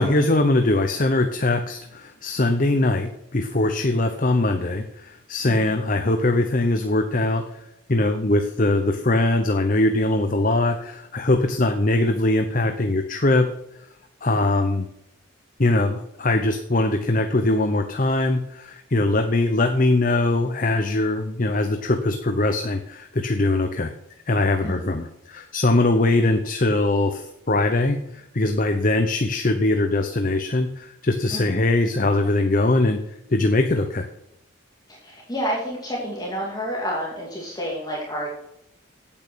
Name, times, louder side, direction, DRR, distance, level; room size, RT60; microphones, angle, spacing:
voice 1, 0.0-13.5 14.2-14.9 15.6-23.9 24.3-33.0 33.3-34.1, left 2 dB, 40° left, 6 dB, 0.8 m, -21 dB
voice 2, 34.9-38.3, equal, 20° left, -4 dB, 2.5 m, -29 dB
8.9 x 8.8 x 6.3 m, 0.81 s
head